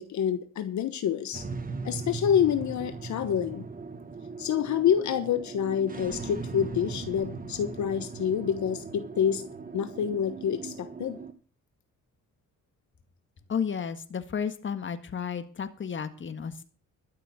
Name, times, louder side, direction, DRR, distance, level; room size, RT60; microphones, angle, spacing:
voice 1, 0.0-1.5 1.8-3.6 4.4-9.4 9.7-11.2, left 8 dB, 70° left, 10 dB, 1.2 m, -27 dB
sound 1, 1.3-11.3, right 4 dB, 30° right, 1.6 m, -39 dB
voice 2, 13.5-16.6, left 7 dB, 40° left, 9 dB, 1.7 m, -32 dB
12.5 x 6.7 x 7.9 m, 0.39 s
cardioid pair, 90°, 30 cm